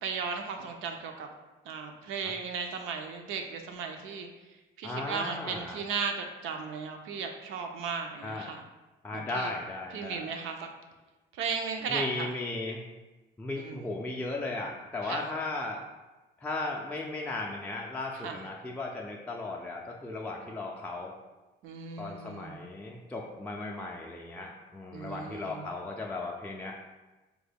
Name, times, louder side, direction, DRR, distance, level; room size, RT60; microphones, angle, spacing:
voice 1, 0.0-1.3 1.6-4.3 4.8-8.6 9.1-9.5 9.9-10.7 11.3-12.3 13.6-13.9 15.0-15.3 18.2-18.4 21.6-22.6 24.9-25.7, right 5 dB, 90° right, 4 dB, 0.4 m, -36 dB
voice 2, 4.8-5.8 8.2-8.5 9.0-10.2 11.9-12.8 13.4-15.8 16.4-21.1 22.0-26.8, left 2 dB, 10° left, -1 dB, 0.3 m, -36 dB
3.4 x 2.1 x 3.4 m, 1.2 s
cardioid pair, 90°, 20 cm